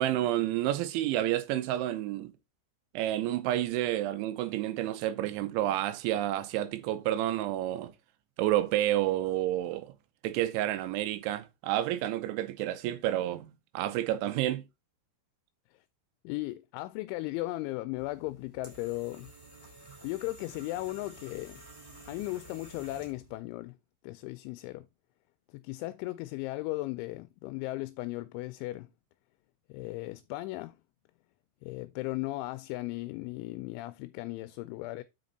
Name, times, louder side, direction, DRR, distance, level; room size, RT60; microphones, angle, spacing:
voice 1, 0.0-2.3 2.9-7.9 8.4-9.9 10.2-14.6, right 13 dB, 80° right, 3.1 m, -30 dB
voice 2, 16.2-19.3 20.0-21.6 22.1-23.7 24.0-24.8 25.5-28.9 29.7-30.8 31.6-35.0, left 19 dB, 85° left, 2.9 m, -36 dB
sound 1, 18.0-23.4, right 2 dB, 5° right, 2.0 m, -51 dB
7.8 x 5.3 x 3.9 m
omnidirectional pair, 5.5 m